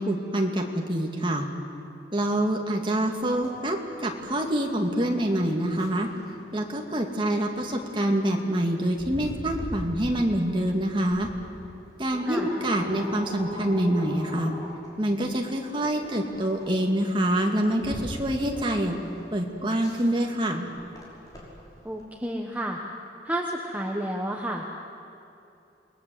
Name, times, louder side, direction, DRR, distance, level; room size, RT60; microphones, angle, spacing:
voice 1, 0.0-1.5 2.1-6.1 6.5-11.3 12.0-14.5 15.0-19.0 19.3-20.6, right 1 dB, 25° right, 2 dB, 2.3 m, -26 dB
sound 1, 3.2-22.0, left 1 dB, 20° left, 5.6 m, -41 dB
voice 2, 21.8-22.8 23.2-24.7, right 1 dB, 10° right, 0 dB, 1.2 m, -30 dB
28.5 x 20.0 x 7.9 m, 2.7 s
head